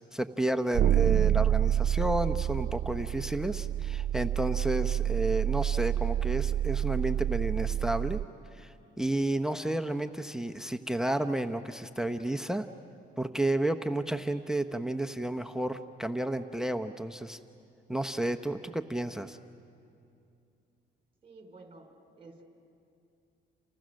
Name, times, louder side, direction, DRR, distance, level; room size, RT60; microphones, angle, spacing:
voice 1, 0.1-8.2 8.5-12.7 13.2-17.4 17.9-19.4, right 1 dB, 5° right, 9 dB, 0.9 m, -31 dB
sound 1, 0.7-8.2, right 11 dB, 65° right, 0.7 m, -28 dB
voice 2, 21.2-22.4, right 3 dB, 30° right, 3 dB, 4.9 m, -52 dB
29.5 x 29.5 x 6.5 m, 2.6 s
cardioid pair, 90°, 20 cm